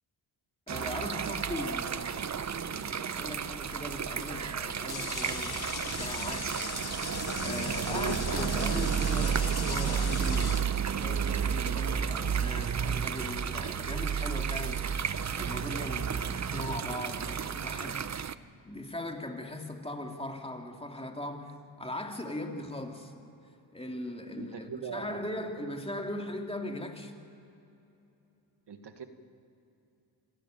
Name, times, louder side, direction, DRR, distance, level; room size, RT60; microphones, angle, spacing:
voice 1, 0.7-6.5 7.4-14.8 15.3-18.1 18.6-23.1 23.7-27.1, left 1 dB, 10° left, 3 dB, 2.6 m, -39 dB
sound 1, 0.7-18.3, right 7 dB, 35° right, 0.7 m, -32 dB
sound 2, 4.9-11.0, left 7 dB, 50° left, 1.3 m, -39 dB
voice 2, 7.8-8.2 24.4-25.2 28.7-29.1, right 6 dB, 55° right, 7 dB, 1.6 m, -39 dB
26.0 x 13.0 x 9.1 m, 2.9 s
cardioid pair, 70°, 48 cm